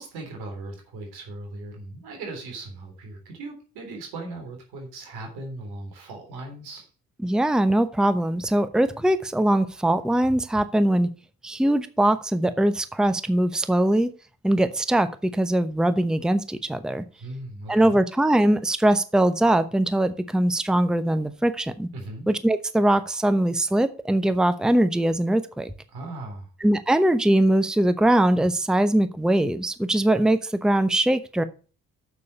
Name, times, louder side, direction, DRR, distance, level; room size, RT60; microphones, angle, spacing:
voice 1, 0.0-6.9 17.2-18.0 21.9-22.3 25.9-26.5, right 2 dB, 80° right, 3 dB, 3.6 m, -38 dB
voice 2, 7.2-11.1 11.4-14.1 14.4-17.0 17.7-21.9 22.3-25.7 26.6-31.4, right 1 dB, ahead, 12 dB, 0.9 m, -21 dB
7.1 x 6.7 x 6.6 m, 0.36 s
hypercardioid pair, 45°, 38 cm